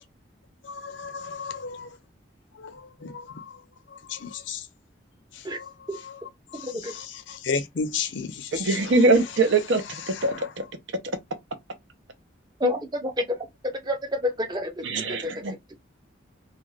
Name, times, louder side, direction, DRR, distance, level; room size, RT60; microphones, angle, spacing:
voice 1, 0.6-2.0 2.6-3.6 3.9-4.7 5.3-9.0 10.1-10.5, left 5 dB, 80° left, 0.5 m, -34 dB
voice 2, 6.6-6.9 12.6-13.4 13.8-14.7 15.1-15.3, left 1 dB, 20° right, 0.6 m, -28 dB
voice 3, 8.6-9.8 10.2-10.6 14.8-15.7, right 3 dB, 80° right, 0.7 m, -22 dB
2.5 x 2.3 x 3.2 m
head